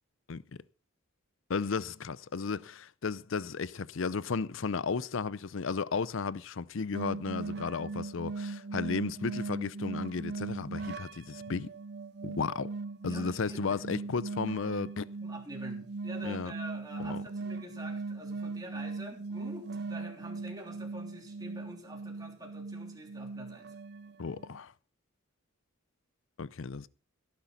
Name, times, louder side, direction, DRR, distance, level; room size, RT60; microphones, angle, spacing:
voice 1, 1.5-11.7 12.2-12.7 13.0-15.1 16.2-16.5 17.0-17.2 24.2-24.7 26.4-26.9, left 5 dB, 65° left, 0.5 m, -34 dB
sound 1, 6.9-24.6, right 3 dB, 55° right, 0.6 m, -39 dB
voice 2, 13.1-14.1 15.2-23.7, right 1 dB, 20° right, 3.3 m, -47 dB
17.5 x 10.0 x 4.0 m
head